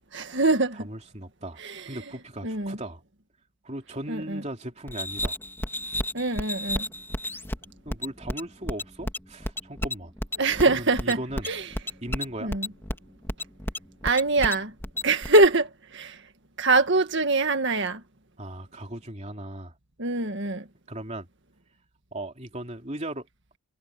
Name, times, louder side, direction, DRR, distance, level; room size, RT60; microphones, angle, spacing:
voice 1, 0.1-0.9 1.6-1.8 2.4-2.8 4.1-4.4 6.1-6.9 10.4-11.2 11.5-11.6 12.4-12.7 14.0-14.7 15.0-16.2 16.6-18.0 20.0-20.7, right 3 dB, 50° right, 1.9 m, -23 dB
voice 2, 0.7-3.0 3.6-5.4 7.8-10.1 10.6-11.5 12.0-12.5 18.4-19.7 20.9-21.3 22.1-23.3, right 1 dB, 30° right, 3.2 m, -37 dB
sound 1, 4.9-15.5, left 1 dB, 10° left, 2.5 m, -32 dB
head